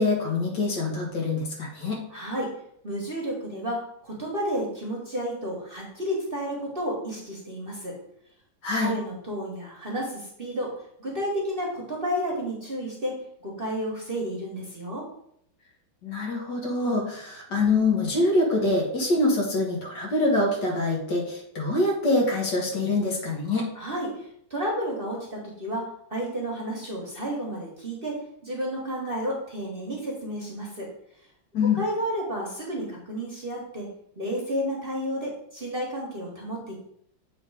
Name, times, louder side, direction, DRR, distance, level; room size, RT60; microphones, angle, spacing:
voice 1, 0.0-2.0 8.6-8.9 16.0-23.7 31.5-31.8, left 2 dB, 60° left, -1 dB, 2.2 m, -25 dB
voice 2, 2.1-2.5 2.8-8.0 8.8-10.7 11.0-13.1 13.4-15.1 23.7-30.9 31.7-33.9 34.2-36.7, equal, 30° right, -3 dB, 1.3 m, -31 dB
7.7 x 3.6 x 4.9 m, 0.70 s
omnidirectional pair, 2.1 m